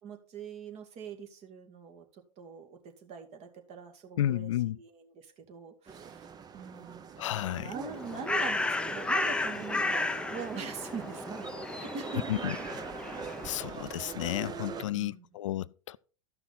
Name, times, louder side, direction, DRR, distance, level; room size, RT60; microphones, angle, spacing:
voice 1, 0.0-4.5 4.8-12.4 14.9-15.3, right 6 dB, 40° right, 2.2 m, -43 dB
voice 2, 4.2-4.8 7.2-7.7 12.3-12.6 13.2-16.0, left 13 dB, 70° left, 0.4 m, -32 dB
sound 1, 5.9-14.8, right 7 dB, 25° right, 0.8 m, -43 dB
Bird, 7.7-13.8, left 2 dB, 5° left, 0.6 m, -33 dB
13.5 x 5.8 x 4.1 m
hypercardioid pair, 95°, 17 cm